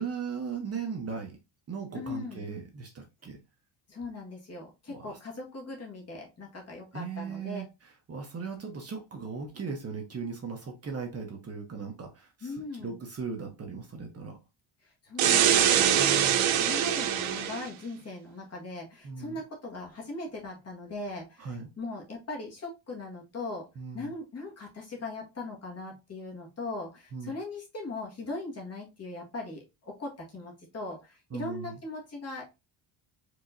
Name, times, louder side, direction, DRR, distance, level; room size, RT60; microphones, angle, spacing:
voice 1, 0.0-1.4 1.7-3.4 4.9-5.2 6.9-7.7 8.1-14.4 15.9-16.4 19.0-19.4 21.4-21.6 23.8-24.1 27.1-27.3 31.3-31.7, right 5 dB, 30° right, 2 dB, 1.0 m, -38 dB
voice 2, 1.9-2.4 3.9-7.6 12.4-13.0 15.0-23.7 23.9-32.5, left 2 dB, 30° left, -1 dB, 1.7 m, -39 dB
sound 1, 15.2-17.7, right 10 dB, 85° right, 0.9 m, -23 dB
4.7 x 3.6 x 2.6 m, 0.25 s
cardioid pair, 150°, 47 cm